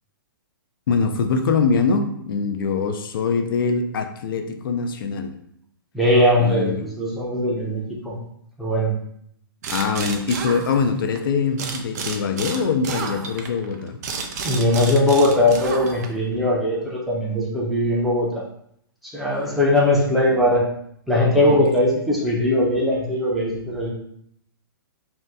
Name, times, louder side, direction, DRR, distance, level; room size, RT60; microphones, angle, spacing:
voice 1, 0.9-5.3 6.4-6.9 9.7-14.0 21.5-21.6, left 5 dB, 65° left, 6 dB, 0.4 m, -23 dB
voice 2, 5.9-8.1 8.6-8.9 14.4-18.4 19.0-20.6 21.1-23.9, left 1 dB, ahead, -6 dB, 0.6 m, -20 dB
sound 1, 9.6-11.2 11.6-16.3, right 5 dB, 45° right, 0.4 m, -31 dB
2.7 x 2.1 x 3.4 m, 0.71 s
hypercardioid pair, 150°, 12 cm